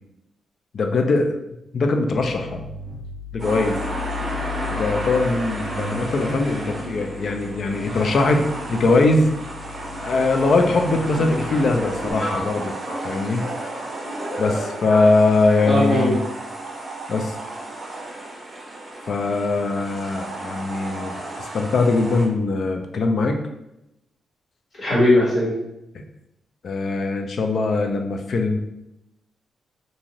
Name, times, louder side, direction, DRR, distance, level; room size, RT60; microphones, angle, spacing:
voice 1, 0.7-1.4 1.7-2.6 3.3-3.8 4.7-9.3 10.0-12.7 13.0-13.5 14.4-16.2 17.1-17.3 19.1-23.4 26.6-28.6, left 3 dB, 55° left, 4 dB, 0.4 m, -21 dB
sound 1, 2.1-12.1, left 4 dB, 55° right, 0.5 m, -36 dB
water filling, 3.4-22.3, right 1 dB, 25° right, 0.7 m, -33 dB
voice 2, 12.1-12.4 12.8-13.0 13.3-15.0 15.6-16.2 24.8-25.5, left 1 dB, 40° left, -6 dB, 1.5 m, -22 dB
2.6 x 2.5 x 3.0 m, 0.85 s
cardioid pair, 105°, 0 cm